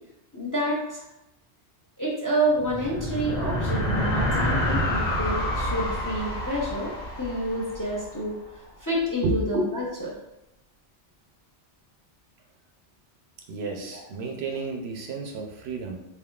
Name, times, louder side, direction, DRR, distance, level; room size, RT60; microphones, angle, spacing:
voice 1, 0.3-1.1 2.0-10.1 13.9-14.0, equal, 20° left, -4 dB, 0.7 m, -28 dB
sound 1, 2.5-8.2, left 1 dB, 40° left, 1.0 m, -28 dB
voice 2, 13.5-16.0, right 4 dB, 70° right, 2 dB, 0.8 m, -31 dB
4.1 x 3.6 x 2.3 m, 0.90 s
omnidirectional pair, 1.2 m